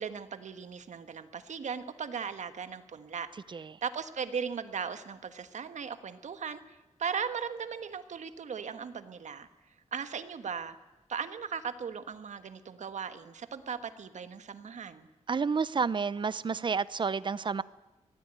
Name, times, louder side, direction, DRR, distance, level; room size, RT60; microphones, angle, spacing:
voice 1, 0.0-3.3 3.5-6.6 7.0-9.5 9.9-10.7 11.1-15.1, right 6 dB, 75° right, 1.6 m, -37 dB
voice 2, 3.5-3.8 15.3-17.6, right 5 dB, 40° right, 0.7 m, -30 dB
24.0 x 17.5 x 9.1 m
wide cardioid pair, 125°, 12 cm